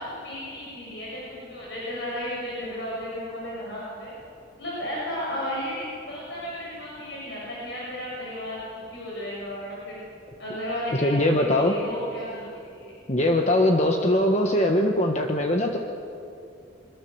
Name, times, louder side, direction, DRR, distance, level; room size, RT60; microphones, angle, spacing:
voice 1, 0.0-4.1 4.6-8.6 8.9-10.0 10.4-12.9, equal, 60° left, -6 dB, 7.2 m, -34 dB
voice 2, 10.9-11.7 13.1-15.8, left 1 dB, 35° left, 2 dB, 1.4 m, -21 dB
25.0 x 24.0 x 7.1 m, 2.6 s
head